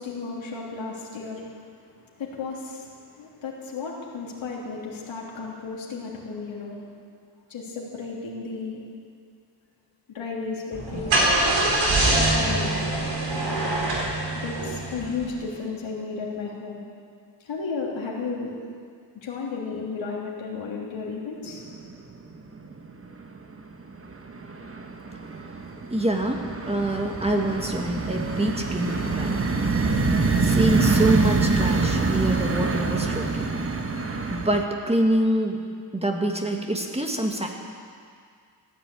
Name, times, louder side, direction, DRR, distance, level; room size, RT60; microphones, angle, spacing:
voice 1, 0.0-1.4 2.1-6.8 7.5-8.8 10.1-11.2 12.3-12.7 14.3-16.8 17.4-18.5 19.1-21.6, left 4 dB, 85° left, -3 dB, 3.3 m, -33 dB
Car / Engine starting, 10.7-15.4, right 2 dB, 80° right, 4.0 m, -24 dB
sound 1, 21.5-22.1 22.4-23.1 23.5-34.6, right 4 dB, 30° right, 1.2 m, -25 dB
voice 2, 25.9-29.4 30.4-33.5 34.3-35.6 35.9-37.5, right 1 dB, 15° right, 2 dB, 1.8 m, -25 dB
16.0 x 10.0 x 8.6 m, 2.2 s
cardioid pair, 90°, 45 cm